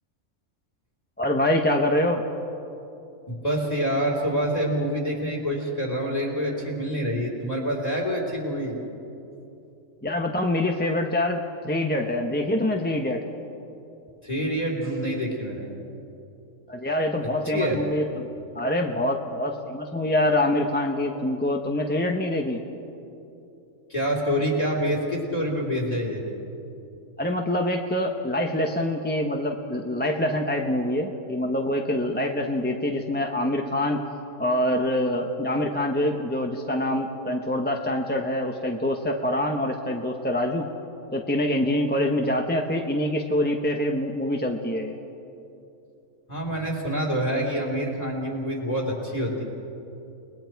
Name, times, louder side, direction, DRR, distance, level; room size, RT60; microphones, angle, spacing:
voice 1, 1.2-2.2 10.0-13.2 16.7-18.3 18.5-22.6 27.2-34.0 34.4-40.7 41.1-45.0, left 1 dB, 10° left, 2 dB, 0.7 m, -25 dB
voice 2, 3.3-8.8 14.2-15.7 17.5-17.8 23.9-26.2 46.3-49.4, equal, 25° left, -1 dB, 3.8 m, -26 dB
30.0 x 20.0 x 4.7 m, 2.9 s
omnidirectional pair, 1.5 m